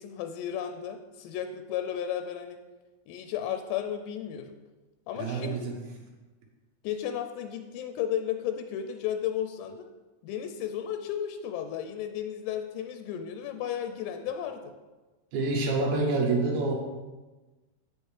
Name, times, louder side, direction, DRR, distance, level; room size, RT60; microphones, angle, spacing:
voice 1, 0.0-2.6 3.1-4.5 5.1-5.7 6.8-9.9 10.2-14.7, left 9 dB, 85° left, 6 dB, 2.7 m, -34 dB
voice 2, 5.2-5.8 15.3-16.8, right 3 dB, 80° right, -1 dB, 1.6 m, -27 dB
8.3 x 6.2 x 3.2 m, 1.2 s
omnidirectional pair, 4.7 m